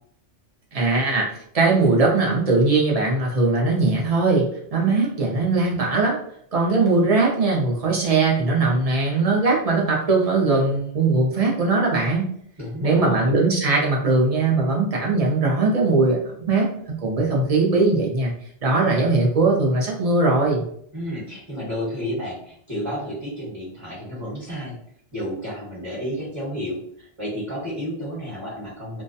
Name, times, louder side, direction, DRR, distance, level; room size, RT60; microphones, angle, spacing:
voice 1, 0.7-1.3 1.5-6.2 6.5-12.3 12.8-18.3 18.6-20.7, right 3 dB, 45° right, -2 dB, 0.5 m, -20 dB
voice 2, 12.6-13.3 20.9-24.7 25.1-29.0, equal, 25° right, -9 dB, 1.0 m, -31 dB
2.3 x 2.1 x 2.6 m, 0.65 s
omnidirectional pair, 1.2 m